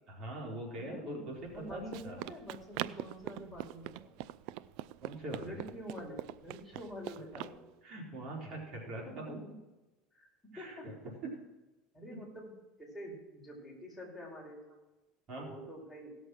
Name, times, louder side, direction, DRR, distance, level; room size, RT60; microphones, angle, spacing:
voice 1, 0.1-2.2 5.0-5.7 6.7-6.8 7.2-7.5 7.8-9.4 10.5-11.3 12.1-12.2 15.3-15.5, right 1 dB, 45° right, -1 dB, 4.0 m, -43 dB
voice 2, 0.8-1.2 1.5-4.1 5.4-7.6 9.1-9.2 10.1-10.3 10.6-10.9 11.9-12.5 12.8-14.6 15.4-16.1, equal, 5° left, -3 dB, 4.8 m, -47 dB
Run, 1.4-7.6, right 15 dB, 65° right, 0.4 m, -43 dB
17.0 x 6.5 x 6.2 m, 1.1 s
supercardioid pair, 120°, 0 cm